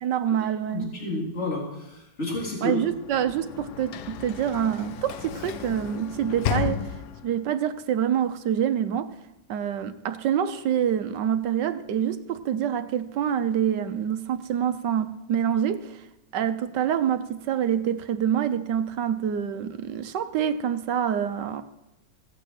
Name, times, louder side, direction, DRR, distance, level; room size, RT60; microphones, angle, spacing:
voice 1, 0.0-0.9 2.6-6.8 7.2-9.1 9.5-16.1 16.3-21.6, right 9 dB, 70° right, 11 dB, 1.3 m, -26 dB
voice 2, 0.7-2.8, left 2 dB, 35° left, -2 dB, 3.9 m, -30 dB
Sliding door / Slam, 2.8-7.5, left 10 dB, 65° left, 1.2 m, -33 dB
16.0 x 9.0 x 7.7 m, 0.93 s
omnidirectional pair, 2.1 m